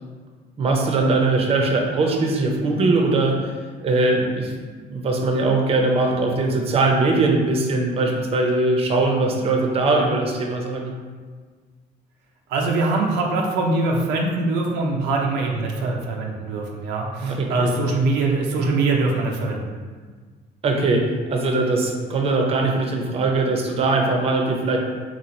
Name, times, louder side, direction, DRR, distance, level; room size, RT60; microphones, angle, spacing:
voice 1, 0.6-3.4 3.8-4.5 4.9-10.9 17.2-17.7 20.6-24.8, right 2 dB, 35° right, 1 dB, 0.5 m, -21 dB
voice 2, 12.5-19.7, right 3 dB, 90° right, 0 dB, 0.5 m, -23 dB
3.0 x 2.4 x 3.9 m, 1.5 s
cardioid pair, 110°, 17 cm